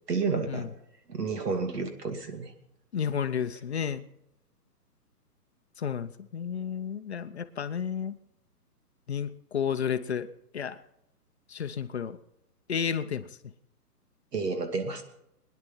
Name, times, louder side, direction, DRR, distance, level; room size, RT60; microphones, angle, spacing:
voice 1, 0.1-0.7 1.1-2.5 14.3-15.0, right 4 dB, 75° right, 7 dB, 2.8 m, -30 dB
voice 2, 2.9-4.0 5.8-8.2 9.1-10.3 10.5-10.8 11.5-12.2 12.7-13.3, left 7 dB, 45° left, 10 dB, 0.7 m, -31 dB
21.5 x 10.5 x 5.6 m, 0.80 s
hypercardioid pair, 170°, 48 cm